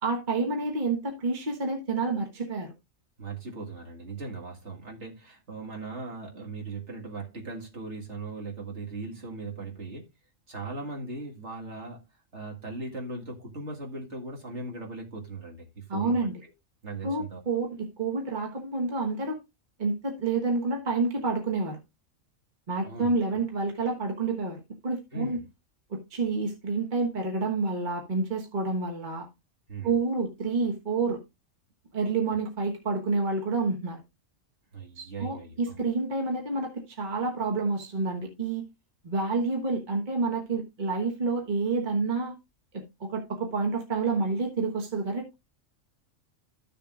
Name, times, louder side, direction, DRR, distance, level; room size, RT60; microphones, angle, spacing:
voice 1, 0.0-2.7 15.9-16.3 17.0-19.4 19.8-21.8 22.7-25.4 25.9-29.3 29.8-31.2 31.9-34.0 35.0-38.7 39.0-42.3 42.7-45.3, right 3 dB, 40° right, 1.5 m, -29 dB
voice 2, 3.2-10.1 10.5-12.0 12.3-16.3 16.8-17.4 22.8-23.1 25.1-25.4 29.7-29.9 34.7-35.8, right 3 dB, 60° right, 2.2 m, -38 dB
13.5 x 6.8 x 2.5 m
omnidirectional pair, 1.4 m